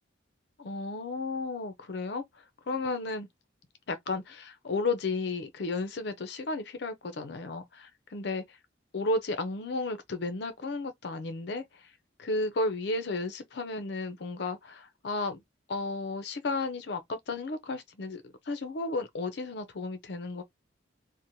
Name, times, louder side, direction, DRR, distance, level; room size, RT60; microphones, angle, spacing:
voice 1, 0.6-2.2 2.7-3.3 3.9-8.6 8.9-11.6 12.2-15.4 15.7-20.4, left 3 dB, 60° left, 0.5 m, -33 dB
2.9 x 2.1 x 2.6 m
head